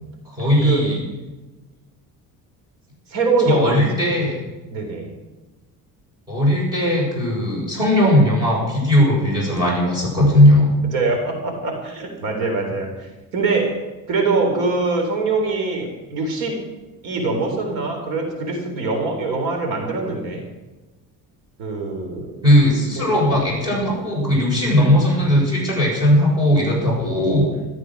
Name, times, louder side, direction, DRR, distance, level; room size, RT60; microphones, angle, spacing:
voice 1, 0.3-1.0 3.5-4.4 6.3-10.7 22.4-27.5, equal, 10° right, -4 dB, 7.0 m, -17 dB
voice 2, 3.1-3.8 4.7-5.1 10.9-13.8 14.1-16.6 17.0-20.4 21.6-22.4 23.0-23.1, right 3 dB, 90° right, 3 dB, 3.9 m, -23 dB
14.5 x 13.0 x 6.4 m, 1.2 s
cardioid pair, 170°, 35 cm